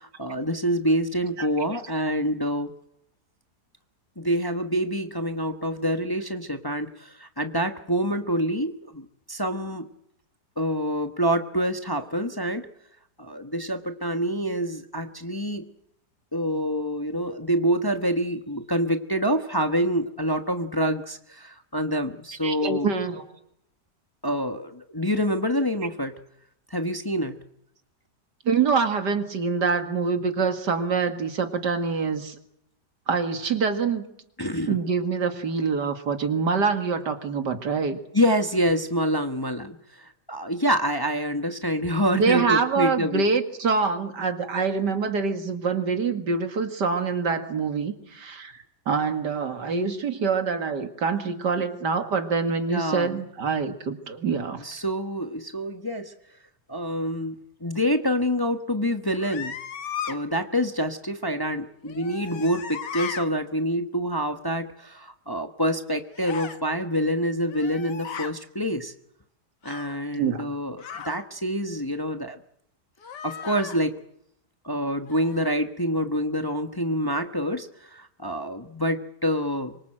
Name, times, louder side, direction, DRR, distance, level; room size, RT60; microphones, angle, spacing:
voice 1, 0.0-2.7 4.2-9.9 10.6-12.7 13.2-15.7 16.3-22.9 24.2-26.2 26.7-27.4 34.4-34.8 38.1-43.2 52.7-53.2 54.6-56.1 56.7-59.6 60.1-68.9 69.6-72.4 73.2-74.0 74.6-79.8, equal, 15° left, 7 dB, 1.1 m, -26 dB
voice 2, 1.4-1.8 22.4-23.2 28.5-32.4 33.1-34.0 34.7-38.0 42.1-48.5 48.9-54.6 70.2-70.5, right 5 dB, 80° right, 7 dB, 2.7 m, -25 dB
sound 1, 59.1-60.2 61.9-63.3 66.1-66.6 67.4-68.3 69.6-70.0 70.8-71.2 73.0-73.8 75.1-75.5, left 7 dB, 85° left, 2.0 m, -36 dB
25.0 x 23.5 x 7.8 m, 0.76 s
omnidirectional pair, 1.8 m